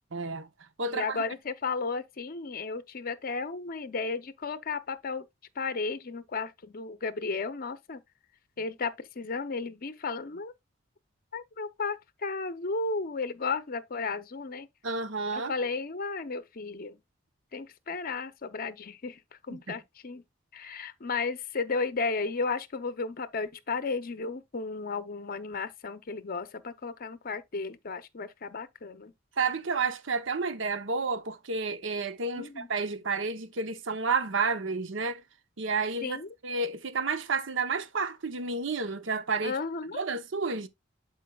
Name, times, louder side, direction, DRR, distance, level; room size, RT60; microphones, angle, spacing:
voice 1, 0.1-0.5 0.8-1.2 14.8-15.5 19.5-19.8 29.4-35.2 35.6-39.6 39.9-40.7, right 4 dB, 70° right, 0.8 m, -31 dB
voice 2, 0.9-5.3 5.6-8.0 8.6-10.5 11.3-14.7 15.3-17.0 17.5-19.2 19.5-20.2 20.5-29.1 32.4-32.7 36.0-36.3 39.4-40.0, left 4 dB, 50° left, 0.7 m, -34 dB
11.0 x 4.6 x 2.3 m
head